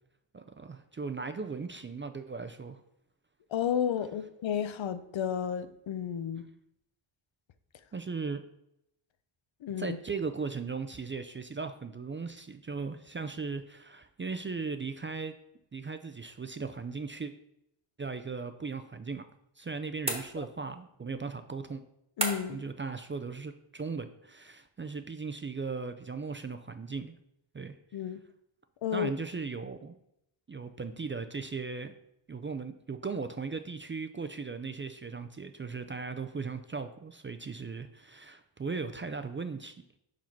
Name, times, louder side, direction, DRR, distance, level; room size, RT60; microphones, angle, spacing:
voice 1, 0.3-2.8 7.9-8.4 9.8-15.3 15.7-17.3 18.0-19.2 19.6-21.8 22.5-27.1 27.5-27.8 28.9-30.0 30.5-31.9 32.3-40.0, right 4 dB, 25° right, 0.3 m, -37 dB
voice 2, 3.5-6.5 9.6-10.0 22.2-22.6 27.9-28.2 28.8-29.1, left 8 dB, 70° left, 0.6 m, -32 dB
sound 1, 20.0-20.8 22.2-22.7, right 1 dB, 10° right, 1.2 m, -34 dB
5.5 x 4.9 x 4.5 m
wide cardioid pair, 100°, 48 cm